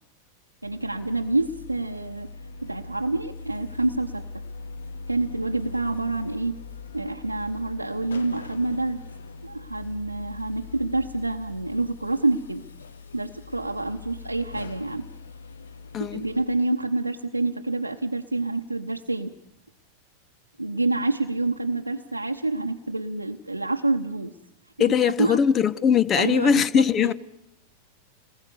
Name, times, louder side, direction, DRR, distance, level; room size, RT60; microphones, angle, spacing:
sound 1, 0.6-16.5, left 4 dB, 70° left, 1.4 m, -41 dB
voice 1, 0.6-2.3 2.6-4.3 5.1-6.6 6.9-9.0 9.4-12.6 13.1-15.1 16.0-19.3 20.6-24.3 24.8-25.4 26.2-27.1, right 2 dB, 85° right, 0.9 m, -27 dB
voice 2, 15.9-16.3 24.8-27.1, left 7 dB, 25° left, 0.9 m, -21 dB
26.5 x 20.0 x 6.9 m
figure-of-eight pair, 90°, 0 cm